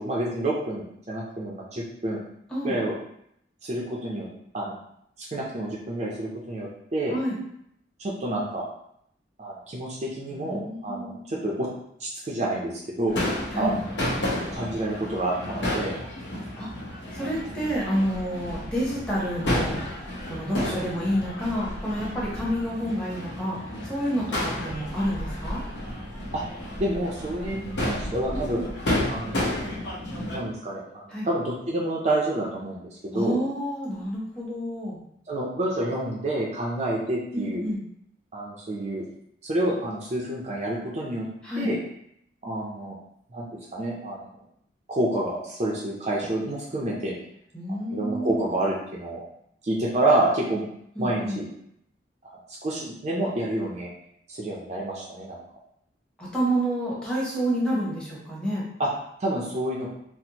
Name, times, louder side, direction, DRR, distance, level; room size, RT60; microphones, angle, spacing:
voice 1, 0.0-2.2 2.6-2.9 3.6-4.3 4.5-4.8 5.3-7.2 8.0-8.6 9.4-11.7 12.0-13.2 13.6-13.8 14.5-15.9 17.2-17.3 26.3-26.4 26.8-28.6 29.1-29.7 30.3-33.4 35.3-37.6 38.3-39.1 39.4-41.3 41.6-41.8 42.4-43.0 43.3-43.5 43.7-44.3 44.9-47.2 47.9-49.2 49.6-50.6 51.0-51.5 52.6-53.9 54.3-55.4 58.8-58.9 59.2-59.9, right 1 dB, 35° right, -4 dB, 0.4 m, -28 dB
voice 2, 10.3-11.1 13.5-13.7 16.6-16.7 17.1-19.8 20.3-25.6 28.3-28.7 31.1-31.3 33.1-35.0 37.3-37.8 41.4-41.7 47.5-48.5 51.0-51.4 56.2-58.7, equal, 5° left, -7 dB, 0.8 m, -29 dB
Crowd / Fireworks, 13.1-30.4, left 1 dB, 70° left, 0.8 m, -31 dB
4.1 x 2.0 x 2.8 m, 0.74 s
head